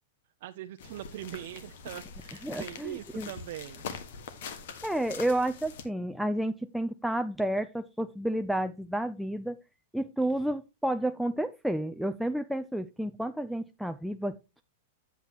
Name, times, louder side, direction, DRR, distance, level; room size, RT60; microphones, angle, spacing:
voice 1, 0.4-3.8, right 13 dB, 60° right, 0.5 m, -41 dB
sound 1, 0.8-5.8, left 6 dB, 65° left, 1.4 m, -43 dB
voice 2, 2.4-3.3 4.8-9.6 9.9-14.4, right 1 dB, ahead, 0.3 m, -31 dB
8.2 x 8.1 x 2.9 m
supercardioid pair, 150°, 0 cm